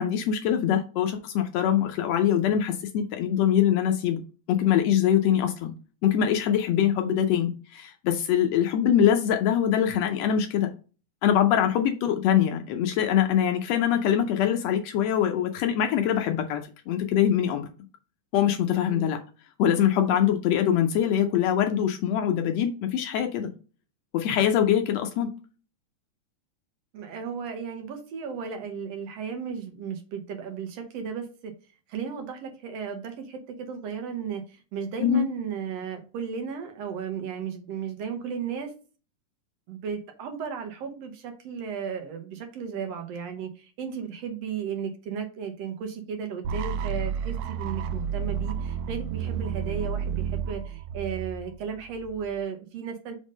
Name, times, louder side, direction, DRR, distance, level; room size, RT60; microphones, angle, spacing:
voice 1, 0.0-4.2 4.5-5.7 6.0-10.7 11.2-17.7 18.3-19.2 19.6-23.5 24.1-25.3 35.0-35.3, left 9 dB, 85° left, 1.4 m, -23 dB
voice 2, 26.9-31.5 31.9-38.7 39.7-53.2, right 7 dB, 65° right, 1.7 m, -35 dB
sound 1, 46.4-52.4, right 7 dB, 85° right, 2.2 m, -31 dB
5.4 x 3.6 x 5.1 m
omnidirectional pair, 3.8 m